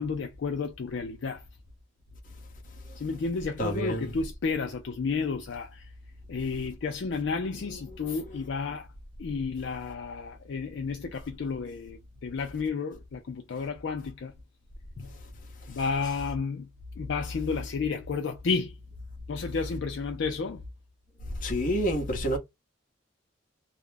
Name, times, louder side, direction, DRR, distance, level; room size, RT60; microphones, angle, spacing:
voice 1, 0.0-1.4 3.0-5.8 6.3-8.9 9.2-14.3 15.0-15.1 15.7-16.7 17.0-18.7 19.3-20.6, left 4 dB, 60° left, 0.4 m, -32 dB
voice 2, 3.6-4.1 7.9-8.0 8.3-8.4 21.4-22.4, equal, 45° left, 0.8 m, -28 dB
2.4 x 2.0 x 3.2 m
head